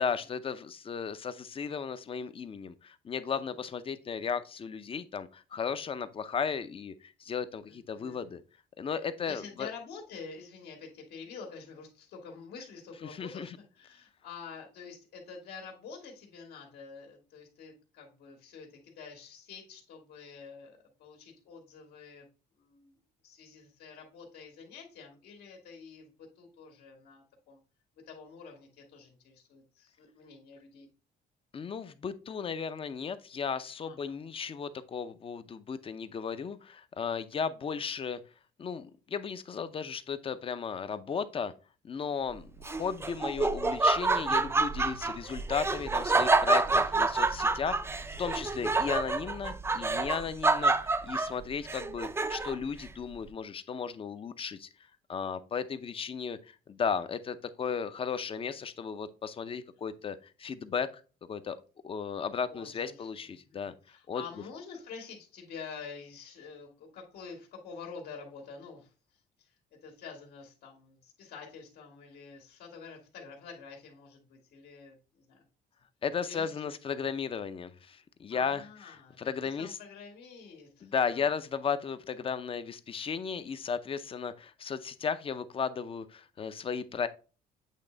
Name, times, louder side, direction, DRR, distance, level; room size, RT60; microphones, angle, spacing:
voice 1, 0.0-8.4 8.8-9.7 13.0-13.6 31.5-38.2 38.6-41.5 41.8-54.7 55.1-60.9 61.3-61.6 61.8-63.7 64.1-64.2 76.0-78.7 79.2-79.8 80.8-87.1, left 6 dB, 35° left, 0.6 m, -35 dB
voice 2, 7.6-8.3 9.2-22.3 22.6-23.0 23.2-27.6 28.1-30.9 33.8-34.2 62.5-68.9 69.4-69.5 69.8-75.4 76.2-76.8 78.3-79.2 79.4-81.3, left 5 dB, 75° left, 2.0 m, -48 dB
Laughter, 42.6-52.7, right 3 dB, 15° right, 0.5 m, -28 dB
8.3 x 3.3 x 3.9 m
cardioid pair, 110°, 17 cm